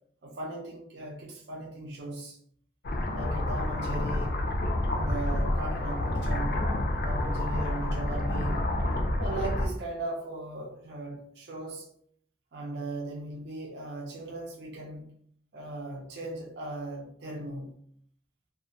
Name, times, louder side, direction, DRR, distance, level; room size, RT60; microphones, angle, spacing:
voice 1, 0.2-2.4 3.1-4.4 4.9-8.7 9.2-11.9 12.5-15.1 15.5-17.7, right 2 dB, 65° right, -2 dB, 0.5 m, -38 dB
sound 1, 2.8-9.7, left 1 dB, 55° left, 0.3 m, -29 dB
2.3 x 2.1 x 2.7 m, 0.66 s
head